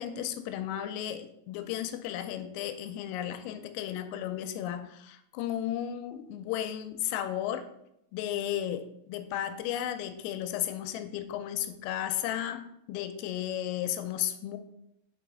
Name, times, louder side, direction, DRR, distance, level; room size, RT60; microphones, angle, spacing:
voice 1, 0.0-7.6 8.1-12.6 12.9-14.6, left 11 dB, 85° left, 8 dB, 3.2 m, -34 dB
7.2 x 4.0 x 4.7 m, 0.78 s
omnidirectional pair, 5.9 m